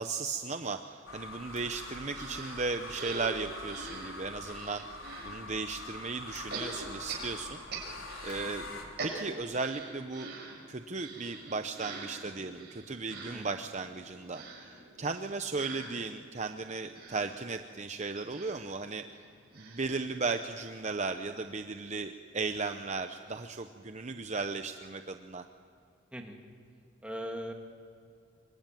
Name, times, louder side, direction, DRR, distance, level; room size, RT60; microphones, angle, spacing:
voice 1, 0.0-7.6 8.2-8.7 9.0-10.3 10.7-19.1 19.5-25.4, right 4 dB, 35° right, 7 dB, 0.8 m, -36 dB
sound 1, 1.1-8.8, left 2 dB, 90° left, 3.8 m, -44 dB
sound 2, 2.1-5.4 6.5-8.5 8.8-20.7 21.1-21.2 21.4-21.5, right 3 dB, 50° right, 5.6 m, -45 dB
voice 2, 8.4-8.8 13.3-13.5 26.1-26.4 27.0-27.5, equal, 5° right, 2 dB, 2.5 m, -40 dB
26.0 x 23.0 x 9.2 m, 2.4 s
head